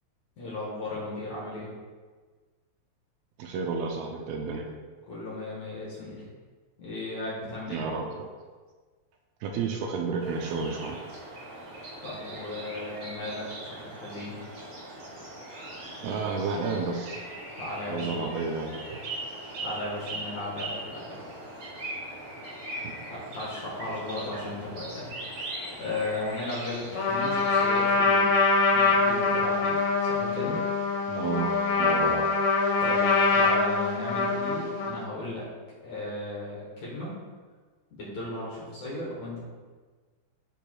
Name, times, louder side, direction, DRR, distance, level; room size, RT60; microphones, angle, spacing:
voice 1, 0.4-1.7 5.1-6.3 6.8-7.9 12.0-14.4 17.6-18.2 19.6-21.2 23.1-25.1 25.8-28.3 28.7-30.6 32.8-35.5 35.8-37.1 37.9-39.4, left 2 dB, 60° left, -6 dB, 2.2 m, -36 dB
voice 2, 3.4-4.7 7.7-8.3 9.4-11.0 16.0-17.2 17.9-19.0 22.8-22.9 31.1-32.3, right 4 dB, 80° right, 2 dB, 2.3 m, -31 dB
sound 1, 10.2-27.9, right 1 dB, 50° right, 2.1 m, -40 dB
Trumpet, 26.9-35.1, left 4 dB, 75° left, 2.0 m, -24 dB
12.0 x 4.6 x 2.3 m, 1.4 s
omnidirectional pair, 4.5 m